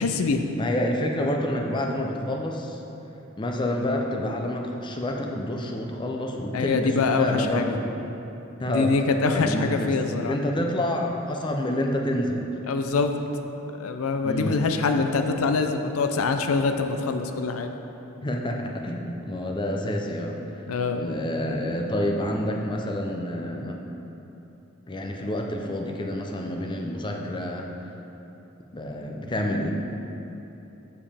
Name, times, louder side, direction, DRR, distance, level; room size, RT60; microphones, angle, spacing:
voice 1, 0.0-0.4 6.5-7.7 8.7-10.3 12.7-13.2 13.8-17.7 20.7-21.1, left 4 dB, 85° left, 6 dB, 0.5 m, -24 dB
voice 2, 0.6-2.8 3.4-8.1 8.6-9.0 9.3-12.5 14.2-14.6 18.2-20.4 20.9-23.8 24.9-27.7 28.7-29.7, left 1 dB, 20° left, 1 dB, 0.5 m, -28 dB
7.5 x 7.0 x 3.4 m, 3.0 s
head